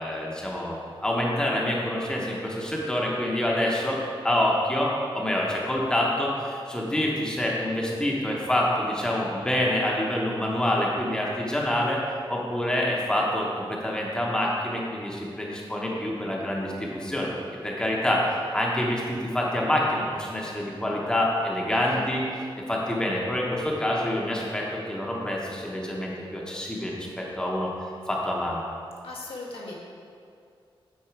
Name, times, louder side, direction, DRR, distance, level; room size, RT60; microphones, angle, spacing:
voice 1, 0.0-4.0 4.2-12.0 12.3-17.3 17.6-22.2 22.6-27.7 28.1-28.7, left 1 dB, 10° left, -3 dB, 0.9 m, -27 dB
voice 2, 21.7-22.0 29.0-29.7, left 2 dB, 75° left, -3 dB, 1.3 m, -38 dB
8.8 x 4.5 x 4.6 m, 2.3 s
wide cardioid pair, 170°, 10 cm